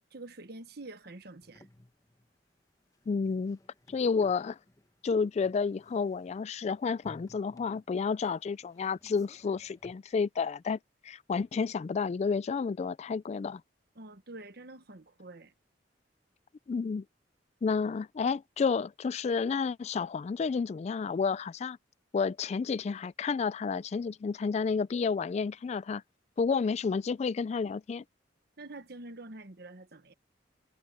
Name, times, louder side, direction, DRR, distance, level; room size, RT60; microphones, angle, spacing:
voice 1, 0.1-1.7 13.9-15.5 28.6-30.1, right 2 dB, 60° right, 1.3 m, -46 dB
sound 1, 1.4-9.9, left 1 dB, 20° left, 1.1 m, -59 dB
voice 2, 3.1-3.6 3.9-4.6 5.0-13.6 16.7-17.0 17.6-21.8 22.1-26.0 26.4-28.0, left 5 dB, 35° left, 0.3 m, -30 dB
head